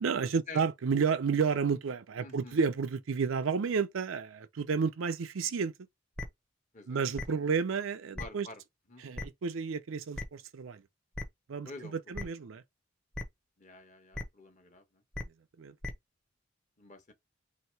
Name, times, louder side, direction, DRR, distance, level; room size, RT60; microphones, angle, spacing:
voice 1, 0.0-5.7 6.9-8.5 9.0-10.8 11.5-12.6 15.6-15.7, right 5 dB, 90° right, 0.5 m, -31 dB
voice 2, 2.2-2.6 6.7-7.4 8.1-8.6 8.9-9.0 11.6-12.3 13.6-15.0 16.8-17.1, left 3 dB, 40° left, 1.1 m, -49 dB
sound 1, 6.2-6.3 7.2-7.3 8.2-8.3 9.2-9.3 10.1-10.2 11.1-11.2 12.1-12.2 13.1-13.2 14.1-14.2 15.1-15.2 15.8-15.9, left 2 dB, 5° left, 0.7 m, -36 dB
3.1 x 2.9 x 4.5 m
head